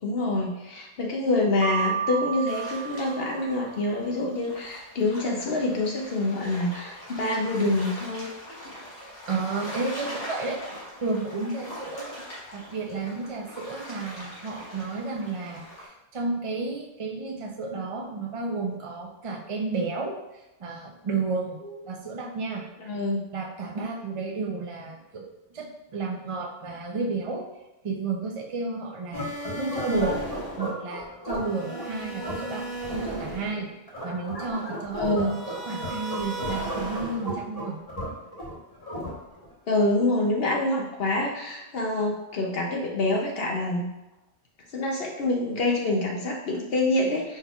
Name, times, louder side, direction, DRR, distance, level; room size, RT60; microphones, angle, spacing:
voice 1, 0.0-8.3 21.6-21.7 22.8-23.2 35.0-35.3 39.7-43.9 44.7-47.4, left 2 dB, 65° left, -1 dB, 0.9 m, -26 dB
Piano, 1.6-3.8, right 8 dB, 70° right, 0.9 m, -31 dB
sound 1, 2.5-15.9, equal, 85° left, 1.7 m, -42 dB
voice 2, 9.3-12.3 12.5-20.1 20.6-21.6 21.8-22.7 23.3-25.2 25.5-27.4 27.8-29.3 29.5-30.2 30.6-33.7 34.0-37.8, right 3 dB, 35° right, 0 dB, 0.6 m, -32 dB
sound 2, 29.1-39.5, equal, 35° left, 1.4 m, -34 dB
5.1 x 4.3 x 2.4 m, 0.97 s
omnidirectional pair, 1.1 m